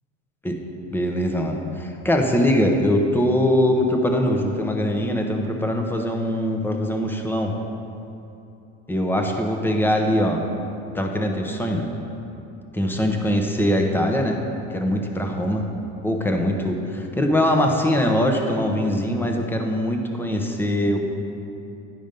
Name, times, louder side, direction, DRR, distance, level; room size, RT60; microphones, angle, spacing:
voice 1, 0.9-7.5 8.9-10.4 10.9-11.9 12.7-14.4 14.7-15.7 16.0-21.0, equal, 5° left, 2 dB, 0.8 m, -22 dB
10.5 x 5.1 x 5.3 m, 2.8 s
supercardioid pair, 115°, 31 cm